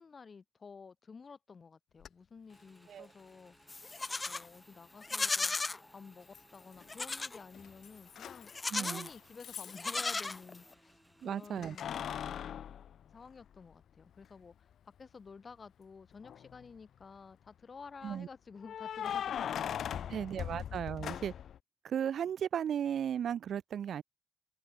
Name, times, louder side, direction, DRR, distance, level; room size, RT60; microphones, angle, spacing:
voice 1, 0.0-3.6 4.3-5.6 5.9-11.9 12.2-12.8 13.1-20.3 21.0-21.3, left 5 dB, 50° left, 3.8 m, -52 dB
Keys jangling, 2.0-2.1 4.0-4.1 6.3-6.9 7.2-10.4 11.6-13.7 14.2-14.3 16.1-16.7 18.6-21.6, left 9 dB, 80° left, 0.6 m, -40 dB
Motorcycle / Engine, 2.5-12.0, right 1 dB, 5° right, 7.2 m, -65 dB
Livestock farm animals working animals, 3.7-4.5 5.0-5.8 6.9-7.4 8.5-9.1 9.7-10.7, left 3 dB, 30° left, 1.0 m, -35 dB
voice 2, 8.7-9.1 11.2-11.8 18.0-18.3 20.1-21.3 21.8-24.0, right 9 dB, 80° right, 1.6 m, -35 dB
open air
cardioid pair, 70°, 0 cm